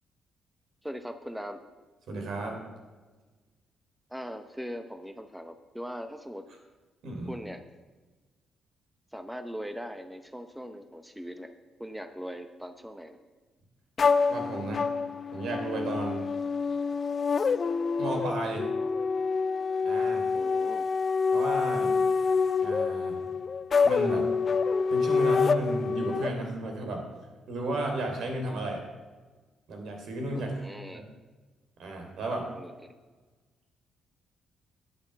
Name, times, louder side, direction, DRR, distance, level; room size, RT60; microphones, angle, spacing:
voice 1, 0.8-1.6 4.1-6.5 7.3-7.6 9.1-11.5 11.8-13.2 20.3-20.8 30.3-31.0 32.5-33.0, equal, 5° right, 8 dB, 0.8 m, -40 dB
voice 2, 2.1-2.6 7.0-7.3 14.3-14.9 15.3-16.3 18.0-18.7 19.8-20.3 21.3-21.9 22.6-23.2 23.8-24.3 24.9-27.0 27.5-28.8 29.7-30.5 30.9-31.0 31.8-32.5, right 2 dB, 70° right, 2 dB, 3.3 m, -33 dB
sound 1, 14.0-26.3, left 5 dB, 40° left, 0.5 m, -27 dB
10.5 x 8.8 x 6.9 m, 1.3 s
cardioid pair, 90°, 0 cm